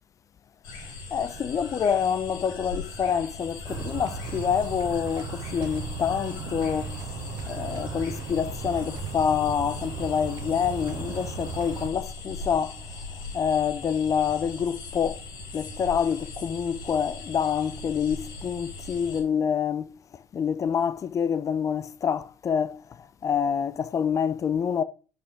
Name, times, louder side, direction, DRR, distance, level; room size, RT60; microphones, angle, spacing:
sound 1, 0.6-19.2, left 3 dB, 50° left, 4.2 m, -40 dB
voice 1, 1.1-6.9 7.5-12.8 13.3-15.2 15.5-19.9 20.3-22.8 23.2-24.8, left 7 dB, 35° left, 0.9 m, -27 dB
sound 2, 3.7-11.9, right 6 dB, 50° right, 1.4 m, -36 dB
9.8 x 5.4 x 6.3 m
figure-of-eight pair, 60°, 10 cm